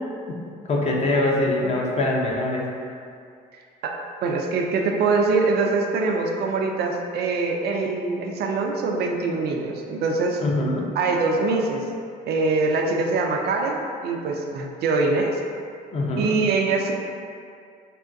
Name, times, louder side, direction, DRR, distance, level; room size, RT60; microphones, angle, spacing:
voice 1, 0.7-2.7 10.4-10.9 15.9-16.4, left 2 dB, 35° left, -2 dB, 0.5 m, -23 dB
voice 2, 4.2-10.4 11.0-11.9 12.3-15.3 16.2-16.9, right 3 dB, 55° right, 1 dB, 0.4 m, -23 dB
3.5 x 2.2 x 2.5 m, 2.3 s
supercardioid pair, 70°, 20 cm